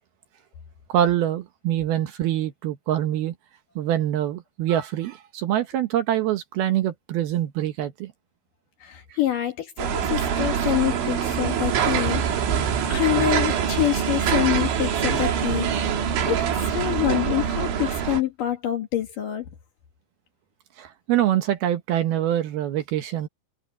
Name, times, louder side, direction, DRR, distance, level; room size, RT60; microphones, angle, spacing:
voice 1, 0.9-3.3 3.8-8.1 20.8-23.3, right 12 dB, 70° right, 2.7 m, -24 dB
voice 2, 8.8-12.2 12.9-15.9 16.3-19.5, left 13 dB, 60° left, 2.6 m, -26 dB
sound 1, 9.8-18.2, right 8 dB, 85° right, 5.2 m, -24 dB
omnidirectional pair, 5.2 m